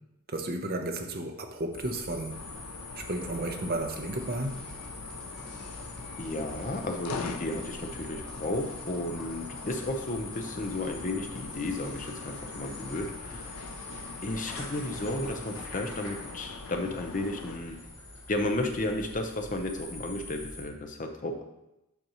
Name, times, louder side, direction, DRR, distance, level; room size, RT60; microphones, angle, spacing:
voice 1, 0.3-2.4 2.9-4.6, right 1 dB, 45° right, 4 dB, 0.7 m, -33 dB
sound 1, 1.7-20.6, left 2 dB, 65° left, 2.6 m, -44 dB
sound 2, 2.3-17.6, left 5 dB, 85° left, 0.5 m, -44 dB
sound 3, 4.1-15.6, equal, 5° left, 0.9 m, -52 dB
voice 2, 6.2-13.6 14.2-17.8 18.3-21.4, left 1 dB, 35° left, 4 dB, 0.7 m, -33 dB
8.1 x 5.3 x 3.0 m, 0.91 s
head